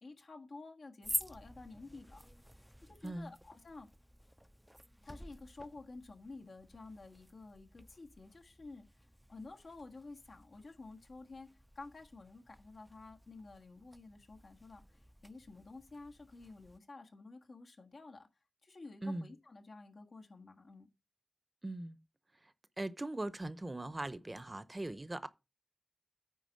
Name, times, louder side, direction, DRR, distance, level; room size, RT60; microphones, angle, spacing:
voice 1, 0.0-2.3 2.8-3.9 5.0-8.9 9.3-18.3 18.6-20.9, left 3 dB, 80° left, 1.6 m, -52 dB
sound 1, 1.0-16.8, equal, ahead, 0.5 m, -49 dB
voice 2, 21.6-22.0 22.8-25.3, right 2 dB, 35° right, 0.8 m, -40 dB
9.3 x 4.1 x 6.5 m
wide cardioid pair, 55°, 0 cm